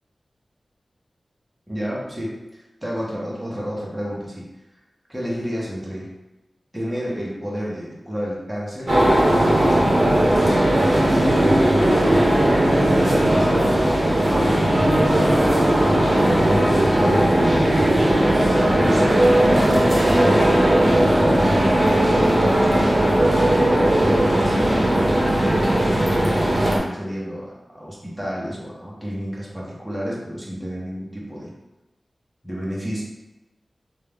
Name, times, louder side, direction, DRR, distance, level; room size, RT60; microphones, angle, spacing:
voice 1, 1.7-4.5 5.1-6.1 6.7-8.9 9.7-11.7 12.7-15.5 16.1-20.4 22.4-31.5 32.4-33.0, equal, 5° right, -5 dB, 1.1 m, -31 dB
sound 1, 8.9-26.8, right 1 dB, 50° right, 0.8 m, -17 dB
3.1 x 2.4 x 3.5 m, 1.0 s
wide cardioid pair, 65°, 0 cm